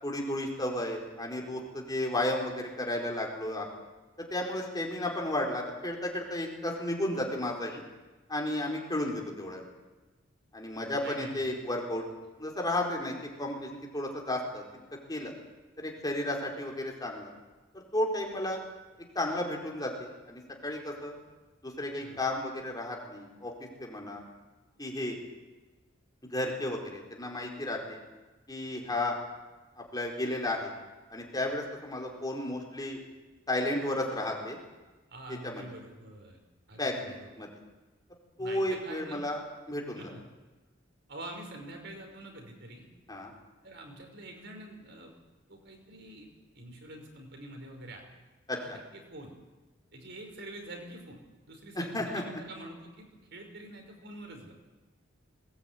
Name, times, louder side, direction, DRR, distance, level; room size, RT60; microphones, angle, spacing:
voice 1, 0.0-3.7 4.2-7.8 8.3-9.7 10.5-12.0 12.4-14.6 15.1-15.3 15.8-17.3 17.7-18.6 19.1-21.1 21.6-23.5 23.8-24.2 24.8-25.2 26.2-28.0 28.5-29.2 29.8-30.7 31.1-33.0 33.5-34.6 35.3-35.6 36.7-37.5 38.4-39.4 39.7-40.1 43.1-43.3 48.5-48.8 51.8-52.2, left 1 dB, 20° left, 0 dB, 4.6 m, -33 dB
voice 2, 11.0-11.5 22.0-22.2 35.1-36.4 36.7-37.3 38.4-39.2 40.0-40.2 41.1-42.9 43.6-45.1 45.5-46.3 46.5-48.0 48.5-49.3 49.9-54.5, right 1 dB, 60° right, 3 dB, 5.3 m, -46 dB
21.5 x 19.5 x 9.3 m, 1.2 s
head